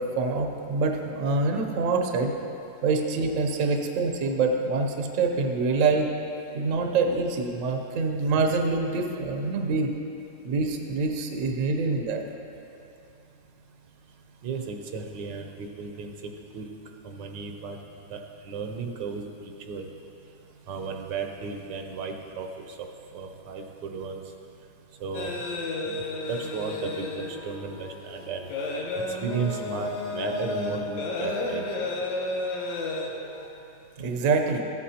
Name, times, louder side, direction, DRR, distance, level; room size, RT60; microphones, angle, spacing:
voice 1, 0.0-2.3 2.8-6.1 6.5-9.9 10.4-12.2 34.0-34.6, right 3 dB, 55° right, 3 dB, 1.0 m, -25 dB
voice 2, 14.4-16.7 17.0-17.8 18.1-19.9 20.7-22.9 23.1-24.2 25.0-25.3 25.8-25.9 26.3-28.5 28.9-31.6, right 5 dB, 75° right, 4 dB, 1.4 m, -34 dB
sound 1, 25.1-33.5, left 2 dB, 85° left, 1.5 m, -32 dB
14.5 x 8.4 x 2.8 m, 2.7 s
omnidirectional pair, 1.9 m